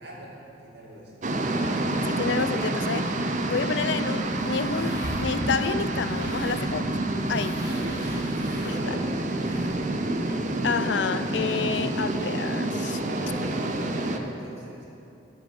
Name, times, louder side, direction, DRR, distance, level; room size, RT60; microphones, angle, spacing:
voice 1, 0.0-1.4 7.6-8.2 8.5-9.4 13.0-14.9, right 1 dB, 65° right, -4 dB, 2.4 m, -40 dB
sound 1, 1.2-14.2, right 2 dB, 45° right, 0.6 m, -28 dB
voice 2, 2.0-3.1 3.4-6.9 7.3-7.6 8.6-9.0 10.2-13.0, left 5 dB, 80° left, 12 dB, 0.5 m, -29 dB
sound 2, 4.1-9.9, equal, 20° right, 2.2 m, -40 dB
15.0 x 5.1 x 6.1 m, 2.7 s
head